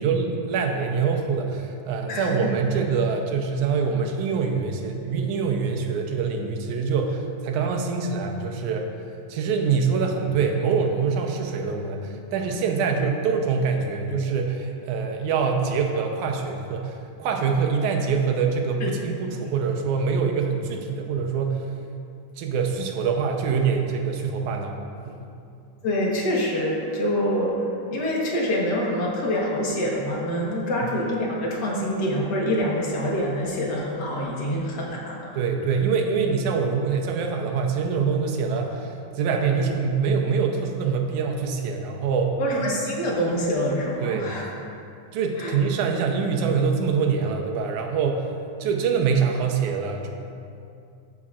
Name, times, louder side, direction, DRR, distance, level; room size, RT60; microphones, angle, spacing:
voice 1, 0.0-8.9 9.3-16.9 17.2-21.6 22.4-24.7 25.1-25.2 35.3-42.4 44.0-44.3 45.1-48.3 48.6-50.1, right 5 dB, 75° right, 3 dB, 2.2 m, -24 dB
voice 2, 25.8-27.5 27.9-35.3 42.4-44.5 45.4-45.5, equal, 50° left, -3 dB, 1.3 m, -25 dB
13.5 x 8.4 x 2.5 m, 2.5 s
omnidirectional pair, 3.6 m